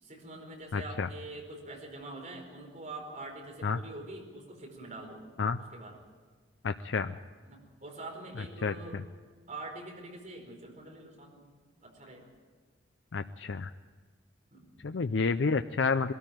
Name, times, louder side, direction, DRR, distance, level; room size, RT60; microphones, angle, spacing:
voice 1, 0.0-5.2 5.7-5.9 7.4-9.0 9.5-11.4 11.8-12.3 14.5-14.7, right 2 dB, 40° right, 1 dB, 4.6 m, -45 dB
voice 2, 0.7-1.1 3.6-3.8 5.4-5.6 6.6-7.2 8.4-9.0 13.1-13.7 14.8-16.1, left 4 dB, 70° left, 9 dB, 0.5 m, -30 dB
21.5 x 13.5 x 9.0 m, 1.5 s
head